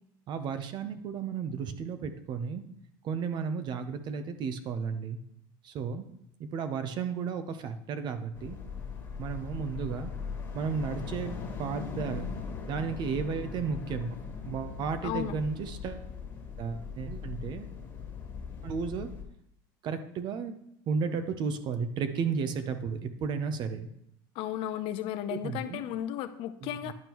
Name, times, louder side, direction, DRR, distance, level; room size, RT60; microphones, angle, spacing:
voice 1, 0.3-2.6 3.0-5.2 5.6-6.1 6.4-8.6 9.2-10.1 10.5-12.3 12.7-14.2 14.4-16.1 16.6-17.7 18.6-19.1 19.8-20.5 20.9-23.9 25.3-25.8 26.6-26.9, right 6 dB, 40° right, 9 dB, 0.8 m, -33 dB
sound 1, 8.4-19.2, left 6 dB, 20° left, 1.7 m, -40 dB
voice 2, 15.0-15.4 24.4-26.9, left 11 dB, 55° left, 10 dB, 0.6 m, -34 dB
10.5 x 5.3 x 3.0 m, 0.74 s
supercardioid pair, 125°, 11 cm